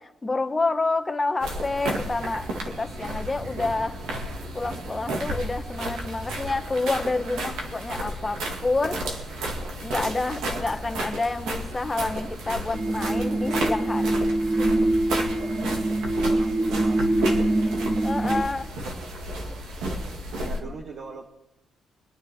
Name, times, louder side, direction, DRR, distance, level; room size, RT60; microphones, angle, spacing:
voice 1, 0.0-2.5 2.8-4.0 4.5-9.0 9.3-9.4 9.8-14.1 14.6-14.7 18.0-18.7 20.4-20.7, left 3 dB, 20° left, 8 dB, 1.1 m, -28 dB
sound 1, 1.4-20.6, right 1 dB, 85° right, 2.1 m, -32 dB
sound 2, 12.7-18.4, right 2 dB, 25° right, 0.8 m, -24 dB
voice 2, 16.3-17.8 18.3-18.5 20.4-21.3, right 4 dB, 60° right, 1 dB, 1.4 m, -41 dB
24.5 x 9.6 x 3.7 m, 0.86 s
cardioid pair, 90°, 0 cm